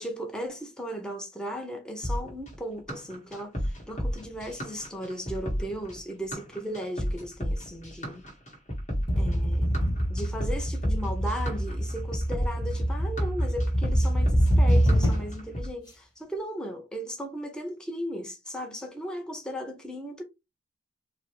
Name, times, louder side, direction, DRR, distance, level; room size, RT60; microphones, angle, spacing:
voice 1, 0.0-8.2 9.2-9.7 10.1-20.2, equal, 5° left, 0.7 m, -36 dB
sound 1, 2.0-15.7, equal, 35° left, 1.6 m, -33 dB
sound 2, 9.1-15.5, equal, 20° left, 1.7 m, -25 dB
4.9 x 2.1 x 3.1 m
head